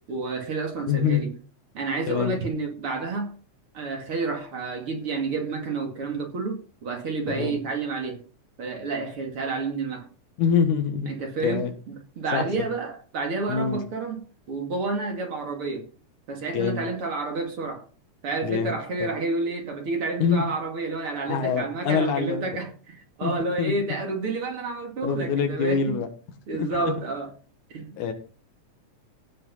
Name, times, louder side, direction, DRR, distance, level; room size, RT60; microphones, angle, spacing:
voice 1, 0.1-1.3 1.7-3.3 3.7-8.2 8.6-10.1 11.1-14.2 14.5-15.9 16.3-17.8 18.2-26.0 26.5-27.3 27.7-27.9, right 3 dB, 45° right, 3.0 m, -30 dB
voice 2, 0.9-1.2 2.1-2.4 7.3-7.6 10.4-11.1 11.4-11.7 12.3-12.7 13.5-13.8 16.5-16.8 18.4-18.7 19.0-19.1 20.2-20.5 21.3-22.4 23.2-23.3 23.6-23.7 25.0-26.1 26.5-26.7 28.0-28.1, left 6 dB, 80° left, 2.9 m, -25 dB
16.0 x 5.6 x 5.5 m
omnidirectional pair, 3.5 m